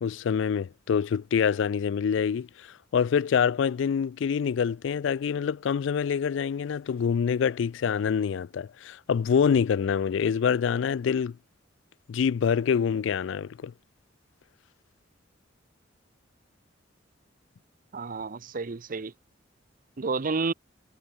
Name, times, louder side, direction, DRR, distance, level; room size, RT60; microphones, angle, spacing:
voice 1, 0.0-2.7 2.9-11.4 12.1-13.7, left 7 dB, 65° left, 0.3 m, -26 dB
voice 2, 17.9-19.1 20.0-20.5, right 4 dB, 45° right, 0.6 m, -30 dB
head